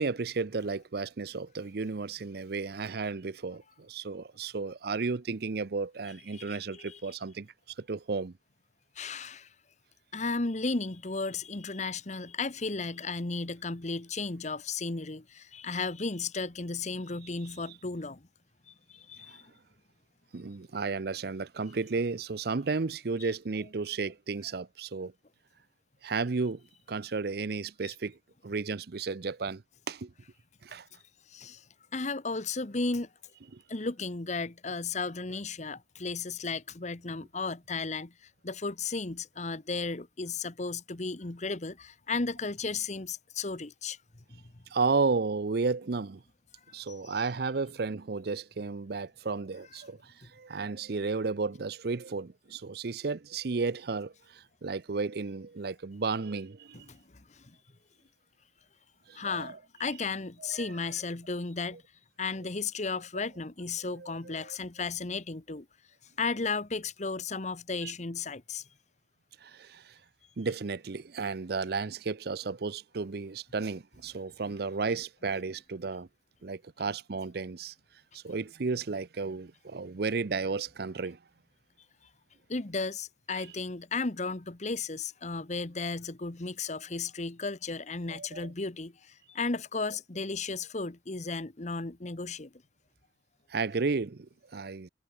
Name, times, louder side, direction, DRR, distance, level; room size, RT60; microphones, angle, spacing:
voice 1, 0.0-7.5 7.8-8.3 19.3-19.4 20.3-25.1 26.0-26.6 26.9-28.2 28.4-29.6 29.9-30.1 30.6-30.8 33.5-33.6 44.7-46.2 46.7-56.9 59.1-59.6 60.6-60.7 63.8-64.6 67.8-67.9 69.4-69.9 70.4-76.1 76.4-77.7 78.1-81.2 88.1-88.5 93.5-94.9, right 4 dB, 60° right, 0.6 m, -33 dB
voice 2, 6.3-7.0 8.9-9.5 10.1-18.3 18.7-19.5 27.8-27.9 31.3-31.6 31.9-33.1 33.7-44.0 44.3-44.6 46.9-47.1 50.2-50.3 56.9-57.6 59.1-61.8 62.2-65.7 66.2-68.7 82.5-92.5, left 4 dB, 40° left, 1.1 m, -34 dB
head